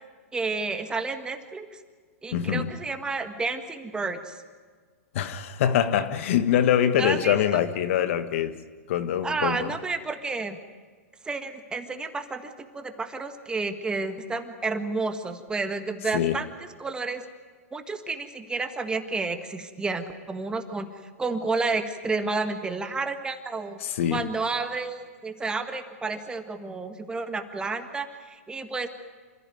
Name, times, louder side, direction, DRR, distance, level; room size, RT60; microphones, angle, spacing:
voice 1, 0.3-1.7 2.2-4.4 7.0-7.6 9.2-10.6 11.2-16.5 16.8-17.2 17.7-20.9 21.2-23.8 24.1-28.9, right 3 dB, 10° right, 7 dB, 1.6 m, -31 dB
voice 2, 2.3-2.7 5.1-8.6 8.9-9.7 16.1-16.4 23.8-24.2, left 10 dB, 60° left, 11 dB, 1.6 m, -24 dB
27.5 x 15.0 x 9.3 m, 1.5 s
hypercardioid pair, 135°, 8 cm